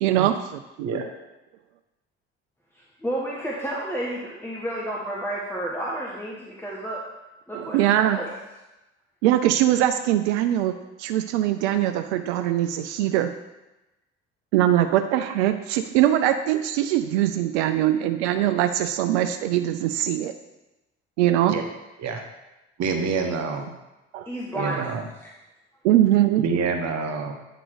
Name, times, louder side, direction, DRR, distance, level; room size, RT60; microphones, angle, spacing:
voice 1, 0.0-1.0 7.5-8.2 9.2-13.3 14.5-20.3 21.2-21.5 24.1-24.3 25.8-26.5, right 12 dB, 75° right, 8 dB, 0.5 m, -22 dB
voice 2, 3.0-7.0 7.5-8.3 23.2-23.3 24.2-24.9, right 1 dB, 5° left, -4 dB, 1.4 m, -31 dB
voice 3, 22.8-23.7 24.5-25.0 26.4-27.3, right 5 dB, 50° right, 5 dB, 1.3 m, -27 dB
9.0 x 3.9 x 4.8 m, 1.0 s
hypercardioid pair, 55°, 34 cm